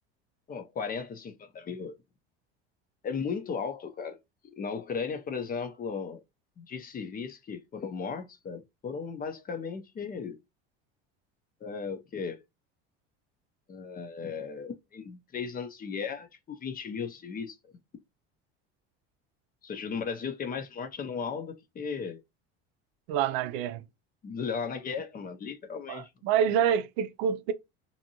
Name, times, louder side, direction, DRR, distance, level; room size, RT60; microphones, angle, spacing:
voice 1, 0.5-1.9 3.0-4.2 4.5-6.2 6.6-10.4 11.6-12.4 13.7-17.6 19.6-22.2 24.2-26.1, left 5 dB, 30° left, 0.5 m, -36 dB
voice 2, 23.1-23.8 25.9-27.5, right 9 dB, 80° right, 0.5 m, -27 dB
2.7 x 2.5 x 2.7 m
supercardioid pair, 100°, 31 cm